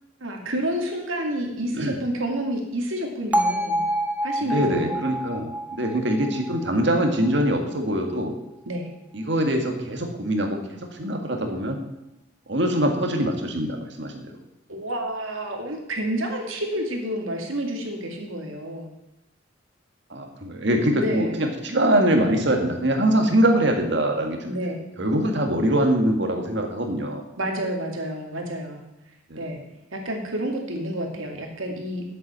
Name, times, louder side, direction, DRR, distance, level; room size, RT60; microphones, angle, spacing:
voice 1, 0.2-3.8 4.2-5.0 8.7-8.9 14.7-18.9 20.9-21.4 24.4-24.8 27.4-28.8 29.4-29.6 29.9-32.0, right 1 dB, 85° right, 2 dB, 2.3 m, -29 dB
Bell, 3.3-7.4, right 1 dB, 5° right, 0.8 m, -27 dB
voice 2, 4.5-8.3 9.1-11.8 12.5-14.3 20.1-24.6 25.0-27.2 29.3-29.5, right 1 dB, 60° right, 3 dB, 1.8 m, -23 dB
8.2 x 7.7 x 7.5 m, 0.91 s
head